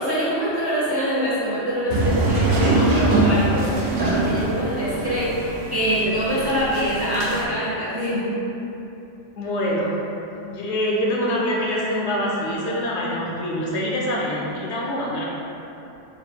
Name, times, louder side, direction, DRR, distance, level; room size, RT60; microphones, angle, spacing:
voice 1, 0.0-3.7 4.0-8.3, equal, 25° right, -10 dB, 0.8 m, -24 dB
sound 1, 1.9-7.4, right 2 dB, 60° right, 0.7 m, -23 dB
voice 2, 9.4-9.9 10.5-15.2, equal, 70° left, -4 dB, 0.9 m, -25 dB
4.2 x 2.0 x 4.3 m, 2.9 s
omnidirectional pair, 1.2 m